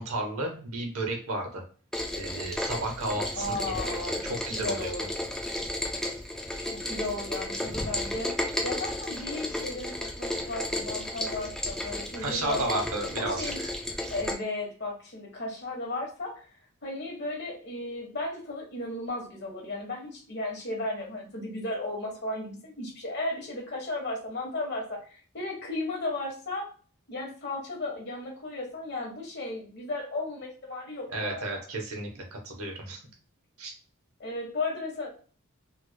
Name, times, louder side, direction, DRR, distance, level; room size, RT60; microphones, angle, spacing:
voice 1, 0.0-1.6 2.1-5.1 12.2-13.7 31.1-33.0 33.6-33.7, right 1 dB, 90° right, 1 dB, 1.1 m, -33 dB
Rain, 1.9-14.3, left 1 dB, 5° left, 0.4 m, -33 dB
voice 2, 3.4-5.1 6.6-12.8 13.2-13.6 14.1-16.5 16.8-25.0 25.3-26.7 27.1-31.6 34.2-35.1, left 2 dB, 50° left, 0 dB, 1.3 m, -35 dB
3.3 x 3.1 x 2.2 m, 0.41 s
head